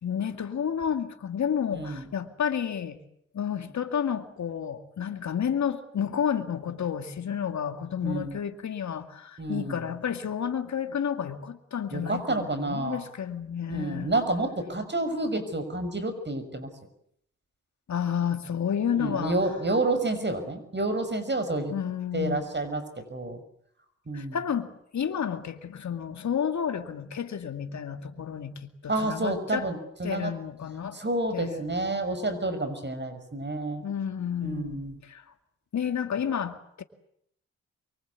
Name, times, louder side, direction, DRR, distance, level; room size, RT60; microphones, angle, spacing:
voice 1, 0.0-3.0 3.3-14.1 17.9-19.4 21.7-22.5 24.1-29.7 30.0-31.0 31.3-31.6 33.8-35.2 35.7-36.8, left 8 dB, 70° left, 8 dB, 2.3 m, -31 dB
voice 2, 1.7-2.1 8.0-8.4 9.4-9.9 11.9-13.0 13.7-16.7 19.0-21.7 22.1-23.4 24.1-24.4 28.9-30.3 30.9-33.8 34.4-34.9, right 2 dB, 35° right, 10 dB, 6.2 m, -29 dB
24.5 x 23.5 x 8.4 m, 0.70 s
supercardioid pair, 40°, 30 cm